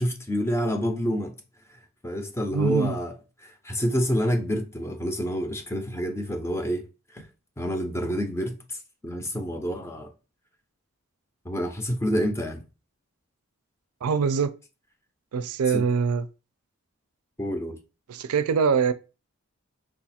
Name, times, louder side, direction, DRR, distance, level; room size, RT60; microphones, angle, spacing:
voice 1, 0.0-1.4 2.0-3.1 3.4-6.8 7.1-7.2 7.6-8.8 9.0-10.1 11.5-12.6 15.7-15.9 17.4-17.8, equal, 10° left, 0.5 m, -28 dB
voice 2, 2.5-3.0 14.0-14.6 15.3-16.3 18.1-18.9, right 5 dB, 80° right, 0.4 m, -23 dB
4.7 x 2.4 x 4.1 m
head